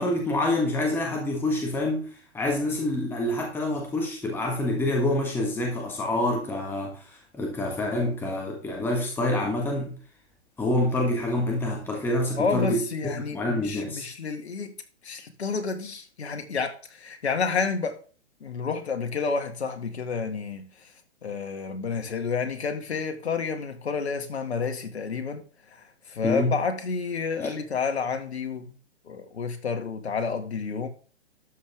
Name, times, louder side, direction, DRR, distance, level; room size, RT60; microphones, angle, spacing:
voice 1, 0.0-2.1 2.3-9.9 10.6-12.8 13.3-14.1 26.2-26.5 27.4-27.5, left 1 dB, 5° left, 1.6 m, -27 dB
voice 2, 12.4-14.7 15.0-18.0 18.4-20.9 21.2-25.4 25.7-28.7 29.1-30.9, left 5 dB, 70° left, 2.3 m, -30 dB
12.5 x 6.8 x 3.6 m
hypercardioid pair, 135°, 34 cm